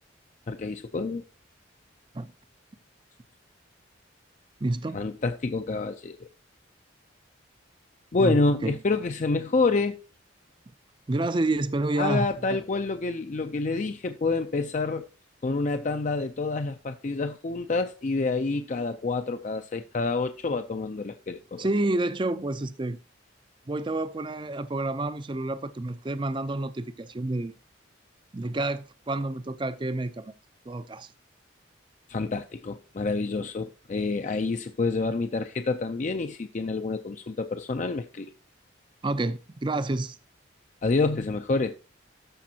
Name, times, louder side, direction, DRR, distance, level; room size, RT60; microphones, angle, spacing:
voice 1, 0.5-1.2 4.9-6.3 8.1-10.0 12.0-15.1 15.4-21.7 32.1-38.3 40.8-41.8, left 3 dB, 40° left, 0.4 m, -28 dB
voice 2, 4.6-5.0 8.2-8.4 8.6-8.8 11.1-12.3 21.6-23.0 23.7-27.6 28.3-30.3 30.7-31.1 39.0-40.2, right 2 dB, 25° right, 0.4 m, -29 dB
13.5 x 5.1 x 2.8 m
head